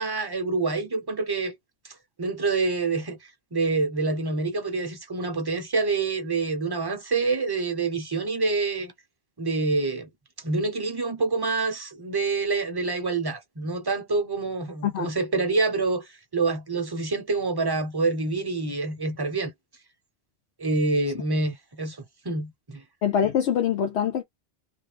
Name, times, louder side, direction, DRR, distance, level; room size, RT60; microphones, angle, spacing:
voice 1, 0.0-1.5 2.2-3.2 3.5-8.9 9.4-10.1 10.4-19.5 20.6-22.0 22.2-22.8, right 3 dB, 25° right, 0.8 m, -26 dB
voice 2, 23.0-24.2, left 8 dB, 80° left, 0.9 m, -24 dB
3.2 x 2.4 x 3.2 m
omnidirectional pair, 1.1 m